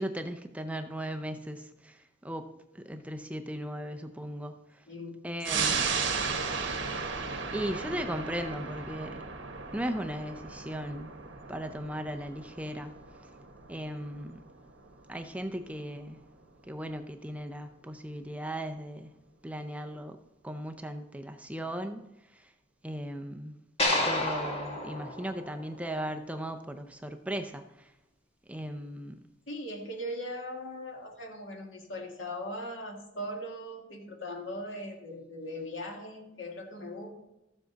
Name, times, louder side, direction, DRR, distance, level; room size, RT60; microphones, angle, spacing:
voice 1, 0.0-4.8 5.2-5.9 7.5-9.3 9.7-11.2 11.5-12.9 13.7-14.4 15.1-16.3 16.7-20.2 20.4-22.5 22.8-23.6 24.0-27.9 28.5-29.2, equal, 5° right, 0.5 m, -37 dB
voice 2, 4.9-5.2 5.5-5.7 29.5-37.1, equal, 80° left, 2.1 m, -39 dB
sound 1, 5.4-16.4 16.8-16.9, right 5 dB, 65° right, 1.4 m, -36 dB
sound 2, 23.8-26.1, left 1 dB, 30° left, 1.5 m, -31 dB
13.5 x 7.3 x 4.0 m
head